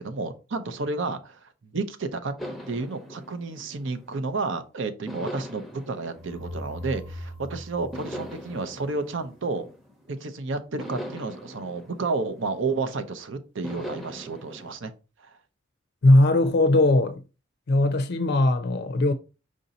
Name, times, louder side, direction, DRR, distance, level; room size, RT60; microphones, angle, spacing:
voice 1, 0.0-2.3 2.6-9.7 10.1-14.9 15.2-15.3, right 3 dB, 65° right, 0.6 m, -31 dB
sound 1, 2.4-4.5 5.1-7.3 7.9-10.2 10.8-13.0 13.6-14.7, equal, ahead, 0.7 m, -41 dB
sound 2, 6.2-9.1, equal, 30° right, 0.9 m, -40 dB
voice 2, 16.0-17.2 17.7-19.1, left 2 dB, 55° left, 0.5 m, -19 dB
5.0 x 2.7 x 3.9 m
head